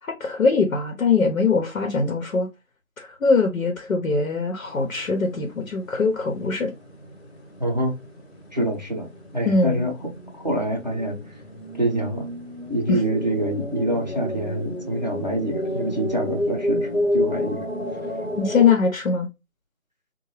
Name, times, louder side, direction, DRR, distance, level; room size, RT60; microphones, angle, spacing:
voice 1, 0.2-2.5 3.0-6.7 9.4-9.8 12.9-13.0 18.4-19.3, left 4 dB, 85° left, 0.9 m, -22 dB
sound 1, 4.6-18.7, left 1 dB, 55° left, 1.1 m, -31 dB
voice 2, 7.6-8.0 8.5-9.1 9.3-11.2 11.8-12.3 12.7-17.7, right 1 dB, 35° right, 0.6 m, -26 dB
2.9 x 2.2 x 3.1 m
figure-of-eight pair, 175°, 40 cm